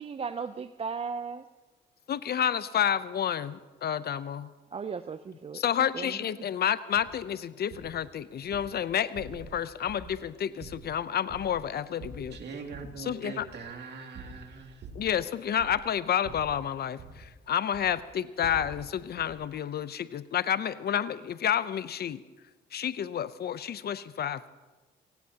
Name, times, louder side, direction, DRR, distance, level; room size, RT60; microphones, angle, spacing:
voice 1, 0.0-1.4 4.7-5.6 5.9-6.2, right 5 dB, 30° right, 11 dB, 0.5 m, -36 dB
voice 2, 2.1-4.5 5.5-12.4 13.0-13.5 15.0-22.2 22.7-24.5, left 9 dB, 55° left, 15 dB, 0.6 m, -30 dB
sound 1, 7.0-7.2 7.7-8.0 8.4-8.7 9.2-9.6 9.9-10.2 10.6-11.7 12.0-13.0 13.4-13.7 14.1-15.2 15.5-15.9 16.2-17.3 17.7-18.0 18.4-18.9 19.2-19.4, right 3 dB, 75° right, 2.7 m, -46 dB
voice 3, 12.3-14.9, right 4 dB, 60° right, 3 dB, 2.4 m, -42 dB
26.5 x 17.5 x 2.8 m, 1.3 s
cardioid pair, 90°, 20 cm